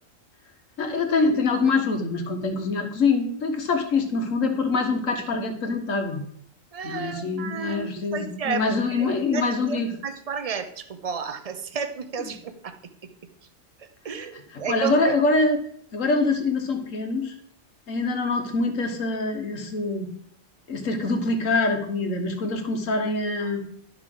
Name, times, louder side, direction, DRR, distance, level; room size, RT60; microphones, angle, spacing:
voice 1, 0.8-6.2 6.8-9.9 14.3-15.6 15.9-17.3 17.9-20.1 20.7-23.6, left 3 dB, 75° left, 5 dB, 1.6 m, -24 dB
voice 2, 6.7-8.6 8.9-12.7 13.0-13.1 13.8-15.1 23.4-23.6, right 6 dB, 35° right, 9 dB, 0.6 m, -32 dB
11.5 x 5.7 x 3.8 m, 0.64 s
omnidirectional pair, 1.4 m